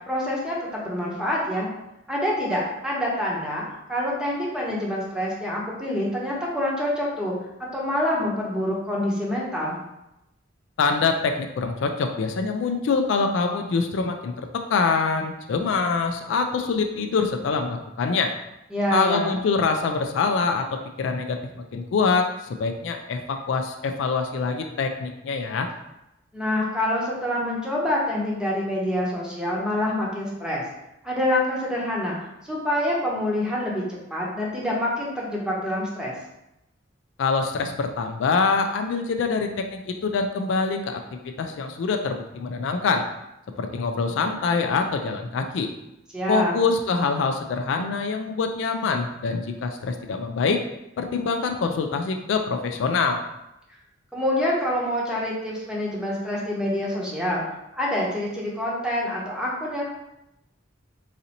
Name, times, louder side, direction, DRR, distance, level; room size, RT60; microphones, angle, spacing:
voice 1, 0.1-1.7 2.1-3.6 3.9-7.3 7.7-9.8 18.7-19.4 26.3-30.6 31.0-32.2 32.4-36.1 46.1-46.5 54.1-57.4 57.7-59.8, left 1 dB, 5° right, -5 dB, 0.7 m, -26 dB
voice 2, 10.8-18.3 18.9-25.7 37.2-41.0 41.4-43.0 43.6-45.7 46.3-50.6 51.0-53.2, left 4 dB, 70° left, 5 dB, 0.3 m, -25 dB
4.0 x 2.6 x 2.8 m, 0.90 s
head